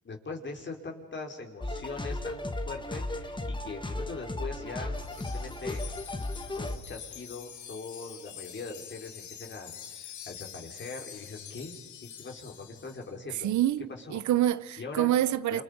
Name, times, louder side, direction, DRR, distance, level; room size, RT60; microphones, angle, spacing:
voice 1, 0.0-5.8 6.5-9.7 10.2-13.5 13.9-14.2 14.8-15.1 15.5-15.6, left 3 dB, 40° left, 4.9 m, -41 dB
sound 1, 1.6-6.8, left 2 dB, 15° left, 1.9 m, -35 dB
Wind chime, 4.9-13.1, left 9 dB, 75° left, 2.2 m, -46 dB
voice 2, 13.4-15.6, right 12 dB, 70° right, 0.9 m, -26 dB
28.5 x 28.0 x 5.3 m
cardioid pair, 90°, 30 cm